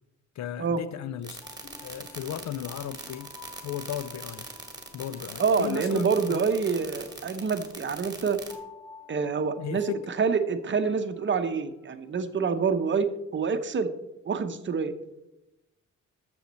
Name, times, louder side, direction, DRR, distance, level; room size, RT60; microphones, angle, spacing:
voice 1, 0.4-1.4 1.8-3.3 3.6-4.5 4.9-6.5 9.6-10.1, left 10 dB, 65° left, 0.5 m, -35 dB
sound 1, 1.2-8.5, right 3 dB, 15° right, 1.5 m, -41 dB
sound 2, 1.4-12.3, left 4 dB, 85° left, 2.2 m, -52 dB
voice 2, 5.4-8.4 9.1-13.9 14.3-14.9, right 5 dB, 40° right, 0.7 m, -27 dB
13.0 x 7.0 x 4.2 m
wide cardioid pair, 170°, 30 cm